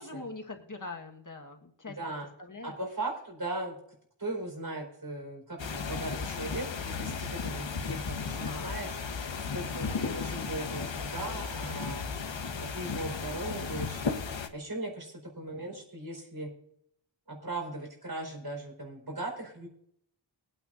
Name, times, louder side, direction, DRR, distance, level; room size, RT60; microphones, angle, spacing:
voice 1, 0.0-2.0 2.4-2.8 8.4-8.7 9.5-10.0 11.2-11.6 15.4-15.6, left 3 dB, 45° left, 3 dB, 1.4 m, -44 dB
voice 2, 1.8-2.3 2.6-3.8 4.2-12.1 12.6-14.0 14.5-16.5 17.3-19.7, right 2 dB, 50° right, 1 dB, 4.4 m, -38 dB
sound 1, 5.6-14.5, left 5 dB, 75° left, 1.1 m, -35 dB
21.5 x 9.0 x 2.5 m, 0.70 s
wide cardioid pair, 65°, 45 cm